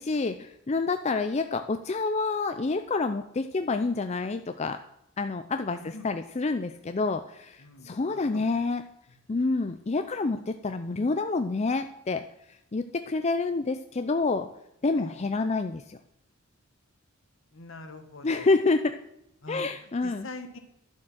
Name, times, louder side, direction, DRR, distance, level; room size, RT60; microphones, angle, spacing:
voice 1, 0.0-4.8 5.2-8.8 9.3-12.2 12.7-14.5 14.8-16.0 18.2-19.0 19.5-20.3, left 3 dB, 30° left, 8 dB, 0.5 m, -28 dB
voice 2, 7.6-8.5 15.0-15.2 17.5-18.5 19.4-20.6, left 2 dB, 65° left, 7 dB, 1.6 m, -44 dB
11.5 x 7.5 x 6.3 m, 0.82 s
head